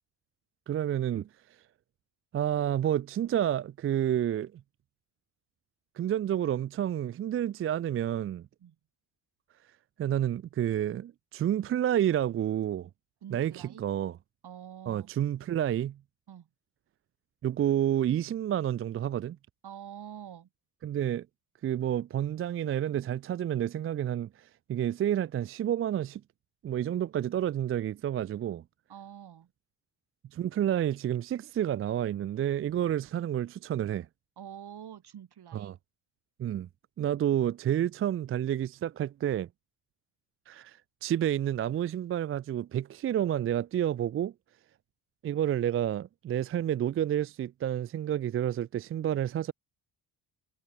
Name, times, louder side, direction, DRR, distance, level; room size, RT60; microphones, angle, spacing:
voice 1, 0.7-1.3 2.3-4.6 6.0-8.5 10.0-12.9 13.3-14.2 14.9-16.0 17.4-19.4 20.8-21.3 21.6-26.2 26.6-28.6 30.3-34.1 35.5-35.8 36.4-36.7 37.0-39.5 40.5-44.3 45.2-49.5, right 11 dB, 30° right, 0.4 m, -29 dB
voice 2, 13.2-13.8 14.4-15.1 16.3-16.5 19.6-20.5 28.9-29.5 34.4-35.8, right 9 dB, 60° right, 7.5 m, -46 dB
supercardioid pair, 70°, 45 cm